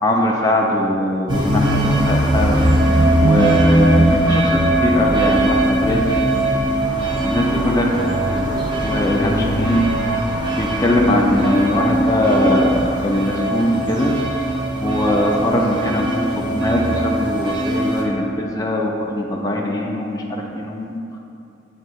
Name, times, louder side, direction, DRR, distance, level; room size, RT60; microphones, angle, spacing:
voice 1, 0.0-2.6 3.2-6.0 7.2-7.8 8.3-8.4 8.8-9.9 10.5-14.1 14.8-21.0, left 1 dB, 20° left, -2 dB, 0.5 m, -21 dB
sound 1, 1.3-18.0, right 1 dB, 25° right, 0.7 m, -19 dB
8.1 x 2.9 x 4.5 m, 2.6 s
head